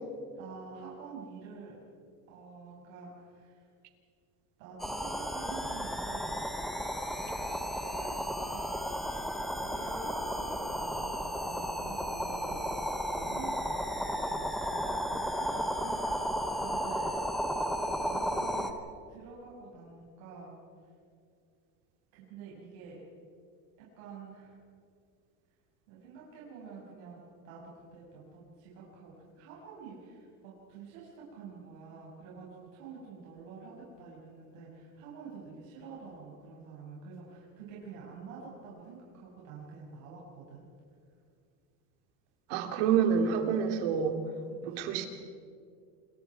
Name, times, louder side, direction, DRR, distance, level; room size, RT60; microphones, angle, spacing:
voice 1, 0.4-1.8 2.3-3.7 4.6-6.3 7.2-8.8 9.3-17.2 18.0-18.8 19.1-20.5 22.1-23.0 24.0-24.6 25.9-27.6 27.9-40.6 43.4-43.5 44.6-45.0, right 4 dB, 85° right, -5 dB, 6.7 m, -48 dB
sound 1, 4.8-18.7, equal, ahead, 0.7 m, -34 dB
voice 2, 42.5-44.2 44.6-45.1, right 7 dB, 60° right, 5 dB, 2.7 m, -27 dB
28.0 x 22.5 x 4.9 m, 2.3 s
cardioid pair, 180°, 39 cm